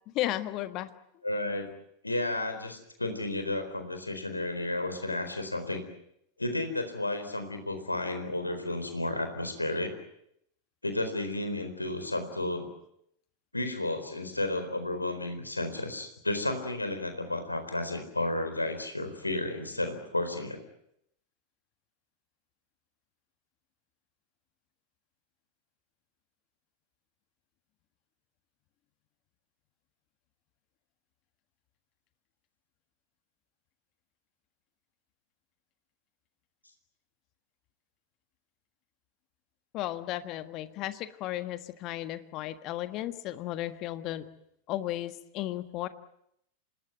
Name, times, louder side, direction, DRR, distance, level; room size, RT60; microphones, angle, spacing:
voice 1, 0.1-0.9 39.7-44.2 44.7-45.9, left 14 dB, 40° left, 11 dB, 1.6 m, -34 dB
voice 2, 1.2-1.7 2.0-5.8 6.4-9.9 10.8-12.7 13.5-20.6, left 2 dB, 85° left, 7 dB, 4.3 m, -32 dB
27.0 x 20.0 x 9.4 m, 0.76 s
figure-of-eight pair, 90°, 0 cm